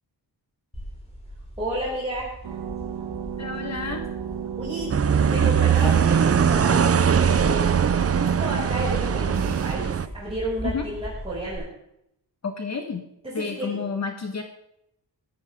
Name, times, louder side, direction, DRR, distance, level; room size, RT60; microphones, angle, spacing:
sound 1, 0.7-11.6, equal, 15° left, 6.7 m, -39 dB
voice 1, 1.6-2.5 4.6-7.7 8.0-11.7 13.2-13.8, right 1 dB, 15° right, -9 dB, 6.4 m, -32 dB
sound 2, 2.4-9.8, right 9 dB, 70° right, 1.0 m, -33 dB
voice 2, 3.4-4.0 10.6-10.8 12.4-13.0 13.3-14.4, left 5 dB, 40° left, 4 dB, 1.5 m, -30 dB
sound 3, 4.9-10.1, right 7 dB, 35° right, 0.7 m, -21 dB
16.5 x 14.5 x 3.7 m, 0.78 s
wide cardioid pair, 145°, 42 cm